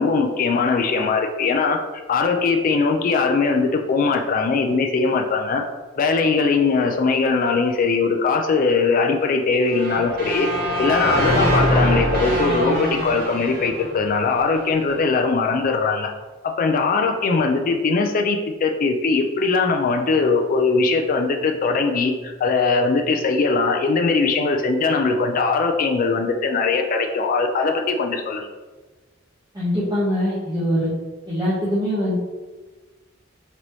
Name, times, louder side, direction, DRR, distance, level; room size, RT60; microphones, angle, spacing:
voice 1, 0.0-1.8 2.1-5.7 6.0-10.5 10.8-16.1 16.4-28.5, left 4 dB, 45° left, 3 dB, 0.3 m, -20 dB
sound 1, 9.7-14.7, equal, 50° right, 0.8 m, -23 dB
voice 2, 29.5-30.9 31.3-32.2, equal, 20° right, -12 dB, 1.0 m, -22 dB
4.0 x 3.0 x 3.0 m, 1.3 s
head